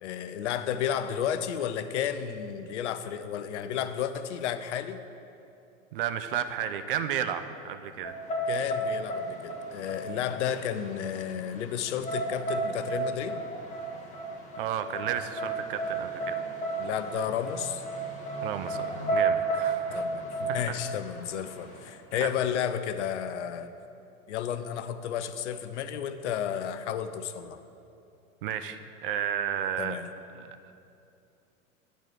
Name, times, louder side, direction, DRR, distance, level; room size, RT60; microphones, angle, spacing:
voice 1, 0.0-5.0 8.5-13.4 16.8-17.8 19.9-23.7 24.3-27.6 29.8-30.1, left 9 dB, 55° left, 11 dB, 0.5 m, -32 dB
voice 2, 5.9-8.2 14.6-16.5 18.4-20.1 20.5-20.6 22.2-22.3 28.4-30.0 30.3-30.6, right 9 dB, 40° right, 9 dB, 0.4 m, -33 dB
sound 1, 8.0-21.9, right 3 dB, 15° left, 1.0 m, -33 dB
8.8 x 4.0 x 6.3 m, 2.7 s
figure-of-eight pair, 95°, 42 cm